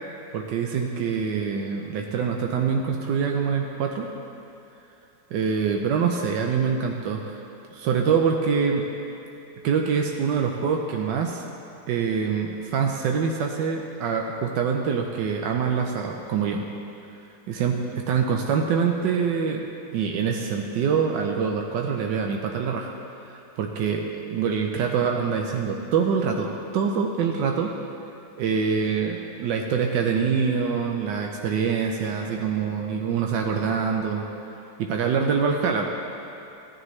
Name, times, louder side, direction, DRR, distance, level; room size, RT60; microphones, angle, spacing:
voice 1, 0.3-4.1 5.3-7.4 7.7-8.8 9.6-11.4 11.9-16.6 17.5-19.6 19.9-22.9 23.2-27.7 28.4-34.3 34.8-35.9, right 6 dB, 90° right, 2 dB, 1.4 m, -25 dB
16.0 x 10.0 x 3.2 m, 2.8 s
omnidirectional pair, 1.9 m